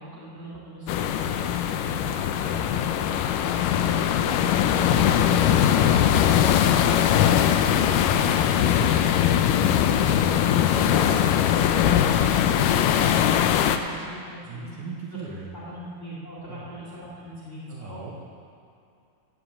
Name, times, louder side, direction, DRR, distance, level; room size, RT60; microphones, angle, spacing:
voice 1, 0.0-2.8 3.3-8.5 10.3-14.7 15.1-18.1, equal, 20° left, -7 dB, 2.2 m, -42 dB
sound 1, 0.9-13.8, left 9 dB, 85° left, 1.9 m, -21 dB
voice 2, 8.5-9.0 14.5-15.6 16.5-16.7 17.7-18.1, right 4 dB, 65° right, -3 dB, 2.4 m, -38 dB
15.0 x 5.1 x 8.6 m, 2.5 s
omnidirectional pair, 4.4 m